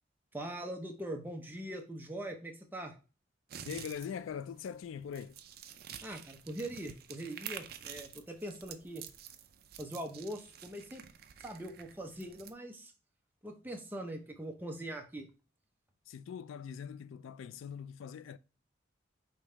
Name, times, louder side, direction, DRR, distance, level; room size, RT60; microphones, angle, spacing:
voice 1, 0.3-2.9 6.0-9.0 9.8-11.0 11.4-12.9 13.4-15.3, right 1 dB, 10° right, 0.7 m, -42 dB
sound 1, 3.5-12.5, right 9 dB, 50° right, 0.4 m, -49 dB
voice 2, 3.6-5.4 16.1-18.4, left 7 dB, 85° left, 0.3 m, -42 dB
5.2 x 3.1 x 3.2 m
head